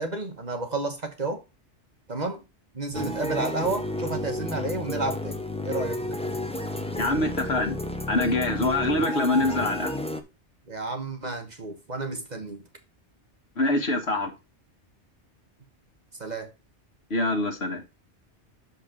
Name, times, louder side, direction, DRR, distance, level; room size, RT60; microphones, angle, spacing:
voice 1, 0.0-1.4 2.1-2.4 2.7-6.0 10.7-12.6 16.2-16.5, right 3 dB, 40° right, 1.3 m, -31 dB
sound 1, 2.9-10.2, left 1 dB, 5° left, 0.7 m, -31 dB
voice 2, 7.0-7.8 8.1-9.9 13.6-14.3 17.1-17.8, left 2 dB, 60° left, 1.9 m, -25 dB
6.6 x 5.4 x 5.0 m
omnidirectional pair, 1.2 m